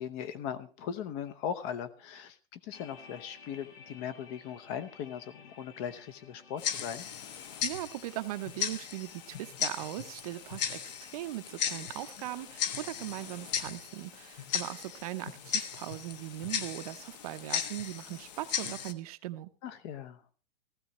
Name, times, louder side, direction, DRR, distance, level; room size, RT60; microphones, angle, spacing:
voice 1, 0.0-7.1 19.6-20.2, left 8 dB, 25° left, 12 dB, 0.8 m, -39 dB
sound 1, 2.7-17.2, left 6 dB, 65° left, 4.4 m, -57 dB
Tick-tock, 6.6-18.9, left 8 dB, 40° left, 1.1 m, -37 dB
voice 2, 7.6-19.5, right 15 dB, 35° right, 11 dB, 0.8 m, -39 dB
15.5 x 15.0 x 3.1 m, 0.33 s
hypercardioid pair, 155°, 32 cm